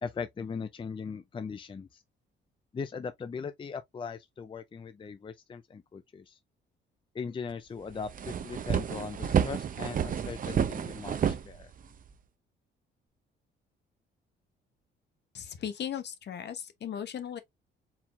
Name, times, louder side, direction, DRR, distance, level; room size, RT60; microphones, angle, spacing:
voice 1, 0.0-2.0 2.7-6.4 7.1-11.7, left 5 dB, 25° left, 0.5 m, -39 dB
sound 1, 7.5-7.6 7.9-12.1, right 8 dB, 45° right, 0.7 m, -30 dB
voice 2, 15.3-17.4, left 9 dB, 60° left, 1.0 m, -37 dB
4.6 x 3.7 x 2.5 m
cardioid pair, 90°, 20 cm